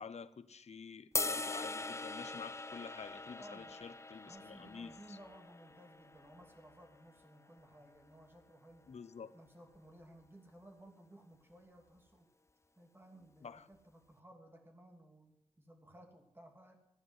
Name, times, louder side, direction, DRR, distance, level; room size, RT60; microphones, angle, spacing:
voice 1, 0.0-5.2 8.9-9.3 13.4-13.7, left 6 dB, 70° left, 13 dB, 0.8 m, -49 dB
sound 1, 1.1-7.4, left 2 dB, 25° left, 0.6 m, -42 dB
voice 2, 3.4-3.8 4.2-8.9 9.3-12.3 12.8-16.8, right 1 dB, 20° right, 3 dB, 2.9 m, -58 dB
15.5 x 9.8 x 8.0 m, 0.86 s
wide cardioid pair, 90°, 11 cm